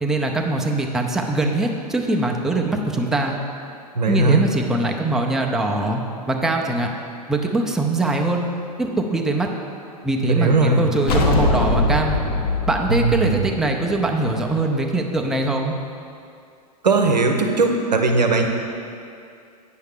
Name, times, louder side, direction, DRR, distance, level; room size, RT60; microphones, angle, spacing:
voice 1, 0.0-3.4 4.0-6.0 6.3-6.9 7.3-8.5 8.8-9.5 10.0-12.2 12.7-15.8, right 2 dB, ahead, 1 dB, 0.5 m, -22 dB
voice 2, 3.9-4.4 10.3-10.9 12.9-13.5 16.8-18.4, right 3 dB, 90° right, 3 dB, 0.7 m, -18 dB
sound 1, 11.1-14.5, left 2 dB, 65° left, 0.9 m, -22 dB
8.3 x 5.5 x 3.6 m, 2.5 s
figure-of-eight pair, 100°, 21 cm